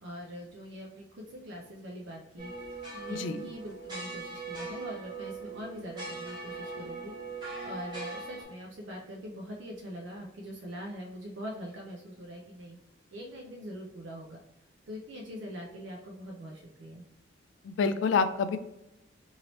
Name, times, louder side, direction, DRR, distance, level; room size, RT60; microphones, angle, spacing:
voice 1, 0.0-2.5 2.9-7.1 7.6-12.8 13.1-14.4 14.9-17.0, equal, 75° right, -1 dB, 0.5 m, -43 dB
sound 1, 2.4-8.4, right 3 dB, 25° right, 1.1 m, -40 dB
voice 2, 3.1-3.5 17.6-18.6, left 5 dB, 80° left, 9 dB, 0.3 m, -27 dB
3.0 x 2.7 x 3.0 m, 0.89 s
head